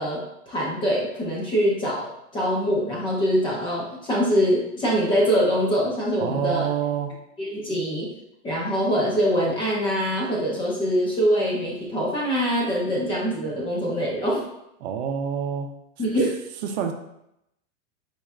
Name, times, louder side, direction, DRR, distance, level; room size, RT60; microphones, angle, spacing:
voice 1, 0.0-6.7 7.4-8.1 8.4-14.5 16.0-16.4, equal, 15° left, -4 dB, 0.6 m, -24 dB
voice 2, 6.2-7.1 14.8-15.7 16.6-16.9, right 8 dB, 70° right, 5 dB, 0.6 m, -27 dB
4.3 x 3.1 x 2.4 m, 0.81 s
supercardioid pair, 155°, 35 cm